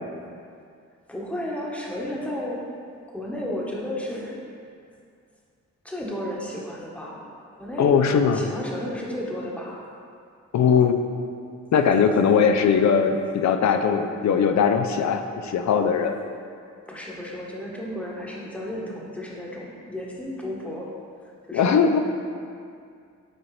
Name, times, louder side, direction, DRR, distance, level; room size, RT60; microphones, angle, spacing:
voice 1, 1.1-2.6 3.1-4.4 5.8-7.2 7.6-7.9 8.3-9.8 16.9-20.9 21.5-22.0, left 1 dB, 5° left, -4 dB, 1.1 m, -33 dB
voice 2, 7.8-8.5 10.5-11.0 11.7-16.1 21.5-22.0, left 6 dB, 65° left, 6 dB, 0.5 m, -20 dB
6.6 x 4.4 x 3.2 m, 2.3 s
cardioid pair, 70°, 30 cm